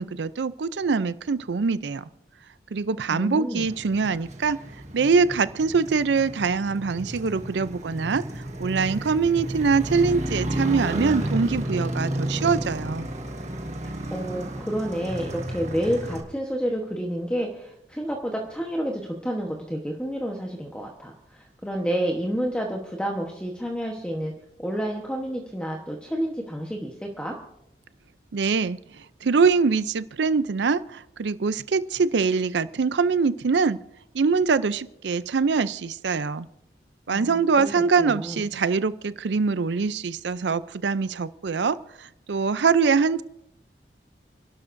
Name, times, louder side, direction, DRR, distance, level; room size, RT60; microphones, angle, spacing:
voice 1, 0.0-2.0 2.7-4.6 4.9-13.1 28.3-28.8 29.2-33.8 34.1-36.5 37.1-43.2, right 5 dB, 80° right, 15 dB, 0.5 m, -23 dB
voice 2, 3.1-3.6 13.8-24.3 24.6-27.3 37.1-38.4, equal, 5° left, 0 dB, 1.1 m, -30 dB
Motorcycle, 3.6-16.2, right 1 dB, 40° right, 1.6 m, -32 dB
29.0 x 12.0 x 2.6 m, 0.79 s
head